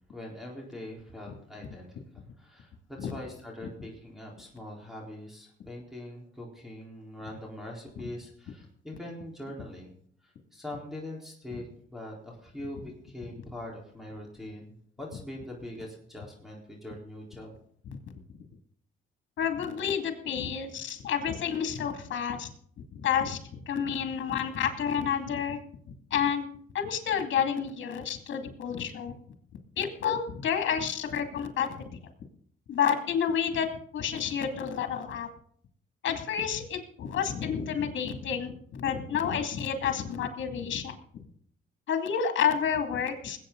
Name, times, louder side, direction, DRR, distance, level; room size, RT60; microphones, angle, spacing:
voice 1, 0.1-9.9 10.2-17.5, left 1 dB, ahead, -2 dB, 4.0 m, -42 dB
voice 2, 19.4-22.5 22.9-23.4 23.7-25.6 26.1-26.5 26.7-29.2 29.8-31.7 32.7-33.7 33.9-35.3 36.0-41.0 41.9-43.4, left 8 dB, 70° left, 6 dB, 2.4 m, -29 dB
21.0 x 8.8 x 3.9 m, 0.62 s
cardioid pair, 90°, 20 cm